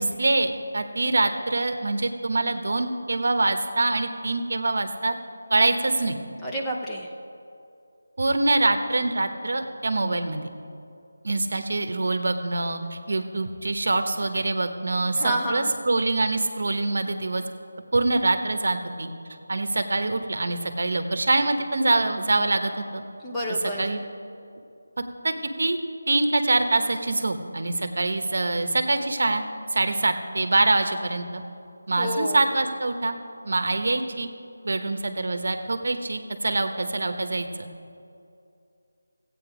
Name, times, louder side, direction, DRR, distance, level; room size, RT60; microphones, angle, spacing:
voice 1, 0.0-5.2 5.5-6.2 8.2-10.5 11.2-17.4 17.9-19.1 19.5-23.0 23.8-24.0 25.2-25.8 26.1-29.4 29.7-31.4 31.9-33.2 33.4-34.3 34.6-37.7, right 2 dB, 60° right, 7 dB, 1.0 m, -24 dB
voice 2, 6.4-7.1 15.2-15.7 23.2-23.9 32.0-32.4, right 1 dB, 5° left, -4 dB, 0.7 m, -29 dB
15.5 x 8.7 x 5.0 m, 2.6 s
figure-of-eight pair, 170°, 0 cm